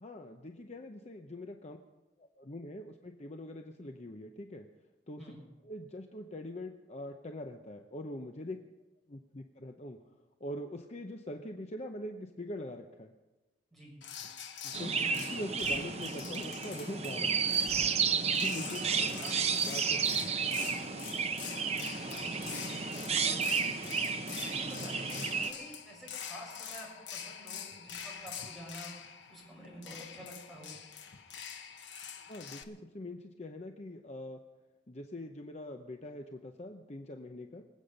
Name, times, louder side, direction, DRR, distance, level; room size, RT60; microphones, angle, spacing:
voice 1, 0.0-1.8 2.2-4.7 5.1-5.2 5.7-8.6 9.1-10.0 10.4-13.1 14.6-17.3 18.4-18.8 19.6-20.7 32.3-34.4 34.9-37.6, left 1 dB, 40° left, 5 dB, 0.8 m, -43 dB
sound 1, 14.0-32.6, left 7 dB, 85° left, 1.2 m, -45 dB
Chirp tweet, 14.7-25.5, right 6 dB, 35° right, 1.0 m, -32 dB
voice 2, 18.8-19.4 22.0-22.8 23.2-24.0 24.4-28.9 29.3-30.8, equal, ahead, -5 dB, 6.9 m, -49 dB
25.0 x 8.4 x 5.3 m, 1.1 s
head